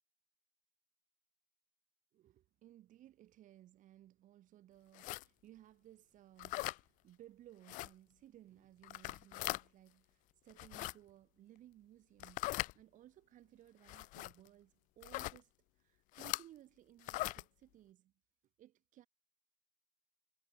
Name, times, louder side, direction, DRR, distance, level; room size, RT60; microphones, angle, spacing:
voice 1, 2.1-18.1 18.6-19.1, right 13 dB, 50° right, 6.4 m, -61 dB
sound 1, 4.9-5.2 6.4-6.8 7.7-7.9 8.8-9.6 10.5-10.9 12.2-12.7 13.9-14.3 15.0-15.4 16.1-16.4 17.0-17.4, left 20 dB, 50° left, 0.5 m, -40 dB
figure-of-eight pair, 60°, 17 cm